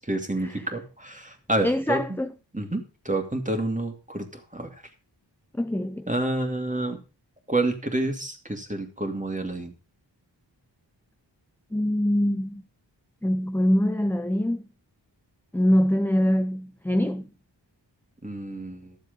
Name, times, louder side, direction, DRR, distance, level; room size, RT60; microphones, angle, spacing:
voice 1, 0.1-2.0 2.5-4.7 6.1-7.0 7.5-9.7 18.2-18.9, right 2 dB, 15° right, 2.5 m, -28 dB
voice 2, 1.6-2.3 5.6-6.1 11.7-12.6 13.2-14.6 15.5-17.3, equal, 5° left, 0.5 m, -24 dB
12.5 x 7.3 x 5.3 m
wide cardioid pair, 55°, 44 cm